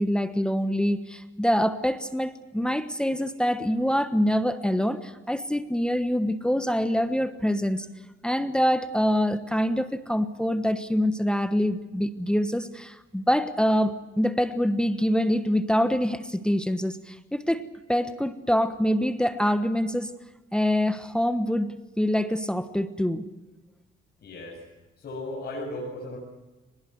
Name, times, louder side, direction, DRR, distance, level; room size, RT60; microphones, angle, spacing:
voice 1, 0.0-7.9 8.2-20.1 20.5-23.2, equal, 5° left, 10 dB, 1.2 m, -25 dB
voice 2, 24.2-24.6 25.0-26.2, left 1 dB, 55° left, -2 dB, 7.5 m, -35 dB
22.5 x 20.5 x 7.9 m, 1.1 s
cardioid pair, 90°, 20 cm